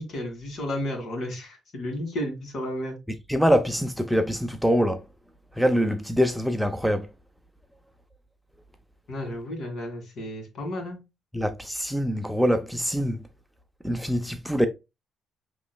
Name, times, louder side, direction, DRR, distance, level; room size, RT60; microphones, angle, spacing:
voice 1, 0.0-2.9 9.1-11.0, left 1 dB, 65° left, 2.1 m, -32 dB
voice 2, 3.3-5.0 5.6-7.1 11.3-13.2 13.8-14.7, equal, ahead, 0.6 m, -24 dB
6.1 x 3.0 x 2.3 m
cardioid pair, 90°, 0 cm